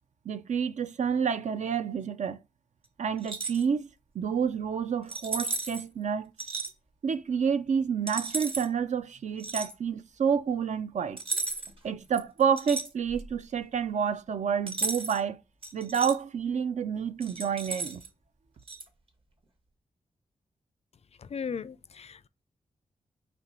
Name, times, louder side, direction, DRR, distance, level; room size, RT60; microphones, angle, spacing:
voice 1, 0.3-2.4 3.0-3.9 4.1-6.3 7.0-11.2 11.8-15.4 15.7-18.0, right 7 dB, 60° right, 0.4 m, -29 dB
sound 1, 3.2-3.6 5.1-5.8 6.4-6.7 8.1-8.7 9.4-9.7 11.2-11.8 12.1-13.3 14.7-15.2 15.6-16.2 17.2-18.1 18.7-18.8, right 3 dB, 40° right, 1.0 m, -34 dB
voice 2, 21.3-22.3, left 6 dB, 50° left, 0.4 m, -36 dB
4.4 x 3.0 x 3.9 m
cardioid pair, 50°, 14 cm